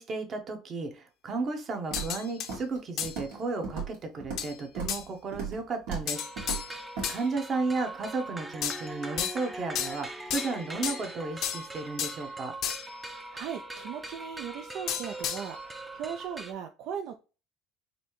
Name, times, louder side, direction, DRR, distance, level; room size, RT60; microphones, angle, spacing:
voice 1, 0.0-6.8 7.1-12.5, right 3 dB, 40° right, 4 dB, 1.0 m, -34 dB
sound 1, 1.9-2.5 3.0-3.2 4.4-4.6 4.9-5.1 6.1-7.2 8.6-9.5 9.8-11.1 11.4-12.2 12.6-13.0 14.9-15.6, left 9 dB, 60° left, 0.6 m, -33 dB
Walk footsteps, 1.9-2.2 2.5-2.8 3.0-3.4 3.6-4.5 4.8-5.0 5.3-5.6 5.9-6.1 6.4-6.6 7.0-7.1, right 5 dB, 85° right, 1.9 m, -36 dB
sound 2, 6.1-16.5, right 2 dB, 10° right, 0.5 m, -41 dB
voice 2, 13.0-17.2, right 8 dB, 65° right, 6 dB, 0.4 m, -38 dB
4.1 x 2.7 x 3.0 m, 0.33 s
supercardioid pair, 100°, 0 cm